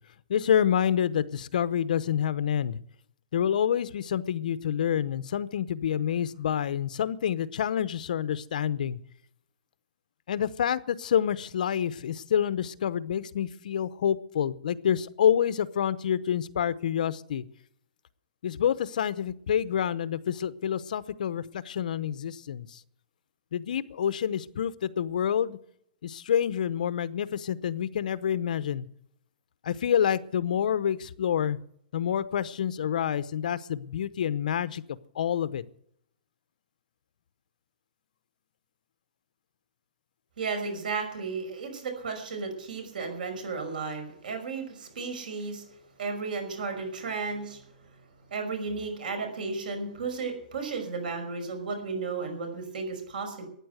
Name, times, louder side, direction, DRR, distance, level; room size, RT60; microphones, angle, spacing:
voice 1, 0.3-2.8 3.3-9.0 10.3-17.4 18.4-22.8 23.5-25.6 26.0-28.9 29.6-31.6 31.9-35.6, left 9 dB, 60° left, 16 dB, 0.8 m, -28 dB
voice 2, 40.4-45.6 46.0-47.6 48.3-53.5, right 4 dB, 75° right, 6 dB, 5.7 m, -34 dB
14.0 x 9.6 x 8.0 m, 0.69 s
hypercardioid pair, 170°, 5 cm